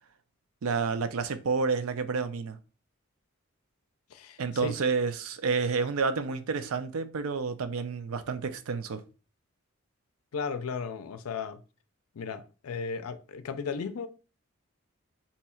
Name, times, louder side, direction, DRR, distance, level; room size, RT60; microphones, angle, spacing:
voice 1, 0.6-2.6 4.4-9.0, right 4 dB, 80° right, 0.4 m, -29 dB
voice 2, 4.1-4.7 10.3-11.6 12.1-14.1, left 5 dB, 85° left, 0.4 m, -35 dB
2.9 x 2.3 x 4.2 m
head